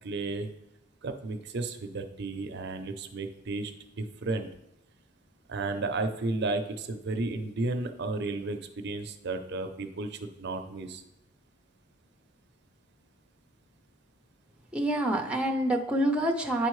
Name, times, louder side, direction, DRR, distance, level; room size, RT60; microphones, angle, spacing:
voice 1, 0.0-0.5 1.0-3.7 4.0-4.5 5.5-11.0, right 3 dB, 60° right, 7 dB, 0.6 m, -33 dB
voice 2, 14.7-16.7, right 1 dB, 5° right, 2 dB, 0.6 m, -27 dB
9.9 x 4.4 x 3.1 m, 0.84 s
head